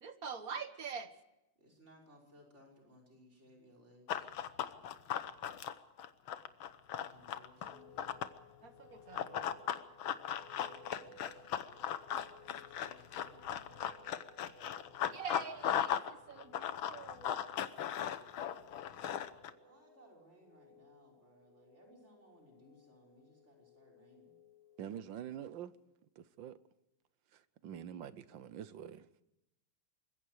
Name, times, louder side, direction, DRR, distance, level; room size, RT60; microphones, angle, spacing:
voice 1, 0.0-1.1 8.6-9.5 15.0-17.4, right 6 dB, 45° right, 1.7 m, -45 dB
voice 2, 1.6-4.5 6.9-8.2 10.5-11.5 12.5-13.8 19.4-24.4, equal, 30° right, 6.1 m, -63 dB
Run, 4.1-8.4 9.1-16.1 16.4-19.5, left 10 dB, 75° left, 1.8 m, -37 dB
sound 1, 7.7-25.1, left 2 dB, 50° left, 4.0 m, -62 dB
voice 3, 24.8-25.7 26.2-26.6 27.3-29.1, right 9 dB, 70° right, 1.5 m, -46 dB
25.0 x 21.5 x 4.8 m
omnidirectional pair, 2.3 m